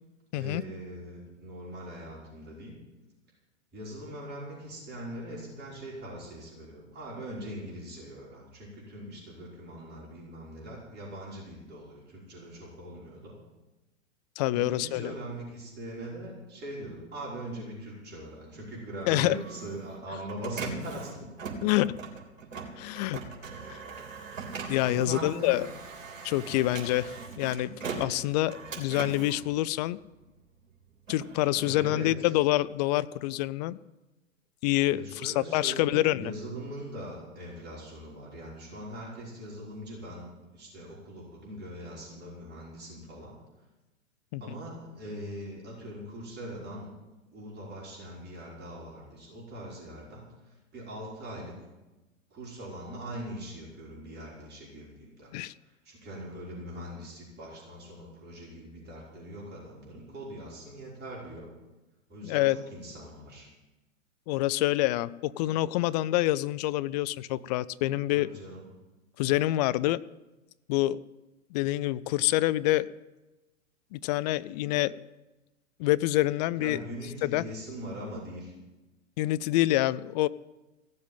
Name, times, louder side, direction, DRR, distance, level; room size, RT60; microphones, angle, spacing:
voice 1, 0.3-2.7 3.7-13.4 14.5-21.2 23.5-23.7 24.9-25.6 26.5-26.6 31.6-32.3 34.9-40.3 40.5-43.3 44.4-46.9 47.3-51.5 52.3-55.3 55.6-61.5 62.1-63.5 68.1-68.7 76.6-78.5, right 1 dB, 25° right, -5 dB, 5.6 m, -41 dB
voice 2, 14.4-15.1 19.1-19.4 21.6-21.9 22.8-23.2 23.7-23.8 24.7-25.7 26.2-30.0 31.1-33.8 34.6-36.3 44.3-44.4 55.3-55.5 62.2-62.6 64.3-68.3 69.2-70.0 70.7-71.0 71.5-72.9 73.9-75.0 75.8-76.8 77.2-77.4 79.2-80.3, left 16 dB, 35° left, 17 dB, 0.4 m, -27 dB
Printer, 19.0-30.4 30.8-32.7, right 4 dB, 70° right, 3.5 m, -41 dB
16.5 x 7.6 x 9.1 m, 1.1 s
hypercardioid pair, 110°, 39 cm